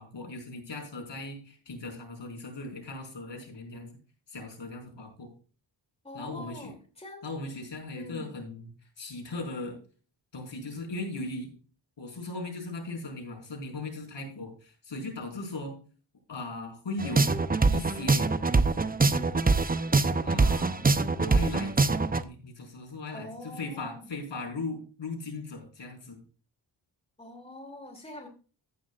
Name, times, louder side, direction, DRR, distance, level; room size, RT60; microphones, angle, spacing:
voice 1, 0.0-4.0 4.3-5.3 6.1-6.7 7.2-8.7 9.0-9.8 10.3-11.5 12.0-15.8 16.3-17.3 17.7-18.3 20.2-20.8 21.2-26.2, left 2 dB, 70° left, 1 dB, 5.0 m, -38 dB
voice 2, 6.0-7.3 7.9-8.3 23.1-24.1 27.2-28.3, left 1 dB, 15° left, 2 dB, 2.9 m, -44 dB
sound 1, 17.0-22.2, right 3 dB, 20° right, 0.6 m, -24 dB
15.5 x 9.8 x 2.5 m, 0.38 s
wide cardioid pair, 120°, 45 cm